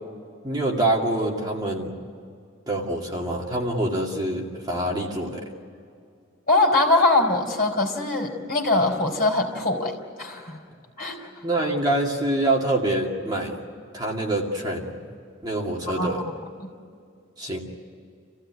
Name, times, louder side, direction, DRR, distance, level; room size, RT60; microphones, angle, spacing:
voice 1, 0.4-1.9 2.7-5.4 11.4-13.5 13.9-14.9 15.4-16.2 17.4-17.6, right 1 dB, 20° right, -2 dB, 2.4 m, -25 dB
voice 2, 6.5-10.6 11.0-11.3 15.9-16.3, left 2 dB, 45° left, 0 dB, 4.3 m, -22 dB
28.0 x 16.0 x 9.6 m, 2.3 s
head